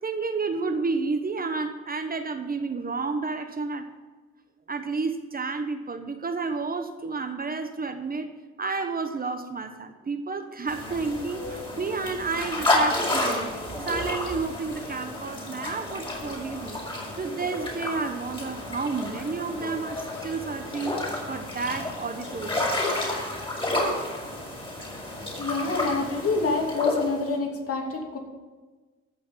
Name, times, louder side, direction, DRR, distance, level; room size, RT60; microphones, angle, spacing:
voice 1, 0.0-3.9 4.7-8.3 8.6-16.8 17.2-21.0 21.3-22.6, right 4 dB, 30° right, 7 dB, 1.1 m, -31 dB
sound 1, 10.7-27.3, left 1 dB, 15° left, 5.0 m, -31 dB
voice 2, 25.4-28.2, left 3 dB, 50° left, 1 dB, 2.9 m, -27 dB
14.5 x 6.3 x 7.4 m, 1.3 s
cardioid pair, 90°, 30 cm